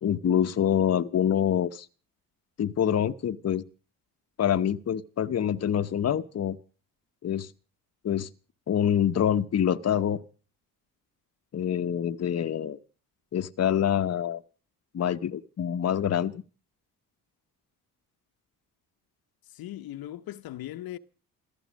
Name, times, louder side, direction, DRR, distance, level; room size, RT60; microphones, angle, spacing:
voice 1, 0.0-1.9 2.6-3.6 4.4-6.6 7.2-7.5 8.0-8.3 8.7-10.2 11.5-12.8 13.3-14.4 14.9-16.4, left 9 dB, 45° left, 0.9 m, -26 dB
voice 2, 19.5-21.0, left 13 dB, 70° left, 0.9 m, -39 dB
15.5 x 14.0 x 6.3 m
supercardioid pair, 70°, 37 cm